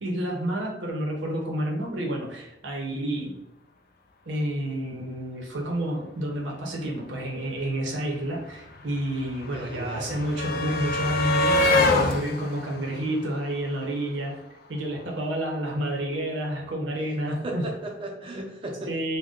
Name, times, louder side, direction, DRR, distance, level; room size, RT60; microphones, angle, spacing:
voice 1, 0.0-3.3 4.3-14.4 14.7-17.7 18.9-19.2, right 1 dB, 90° right, -1 dB, 0.8 m, -29 dB
sound 1, 7.6-7.7 7.8-14.0 15.2-15.3 15.6-15.7, left 2 dB, 55° left, 0.4 m, -26 dB
voice 2, 9.5-10.1 17.4-18.9, right 1 dB, 30° right, 1 dB, 0.5 m, -35 dB
2.6 x 2.2 x 3.6 m, 0.85 s
head